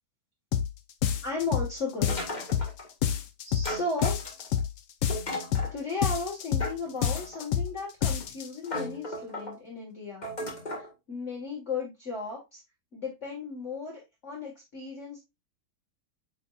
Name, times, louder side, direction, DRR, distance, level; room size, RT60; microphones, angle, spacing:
sound 1, 0.5-0.7 1.0-1.7 2.0-2.7 3.0-3.7 4.0-4.7 5.0-5.7 6.0-6.7 7.0-7.7 8.0-8.5, left 9 dB, 90° left, 1.5 m, -27 dB
voice 1, 1.2-2.1 3.4-4.2 5.7-10.3 10.7-12.6 12.9-15.3, left 3 dB, 40° left, -2 dB, 2.0 m, -35 dB
sound 2, 2.1-2.9 3.6-4.6 5.1-5.8 6.6-7.5 8.2-8.3 8.7-9.5 10.2-10.9, left 1 dB, 25° left, 1.8 m, -36 dB
8.9 x 4.6 x 2.5 m, 0.23 s
omnidirectional pair, 2.1 m